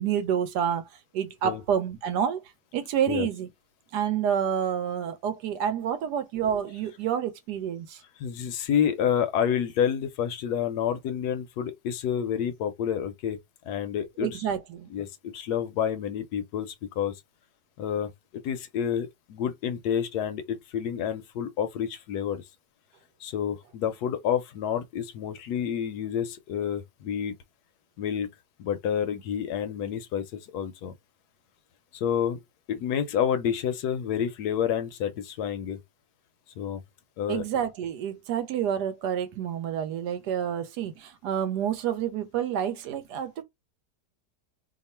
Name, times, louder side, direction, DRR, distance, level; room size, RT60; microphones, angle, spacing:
voice 1, 0.0-2.4 2.7-3.5 3.9-8.0 14.2-14.9 37.3-43.4, right 9 dB, 75° right, 1.2 m, -28 dB
voice 2, 8.2-13.4 13.7-14.4 14.9-17.1 17.8-18.1 18.4-22.4 23.2-27.3 28.0-28.3 28.6-30.9 31.9-32.4 32.7-35.8 36.6-36.8 37.2-37.4, left 8 dB, 75° left, 1.0 m, -29 dB
2.9 x 2.4 x 4.2 m
omnidirectional pair, 1.9 m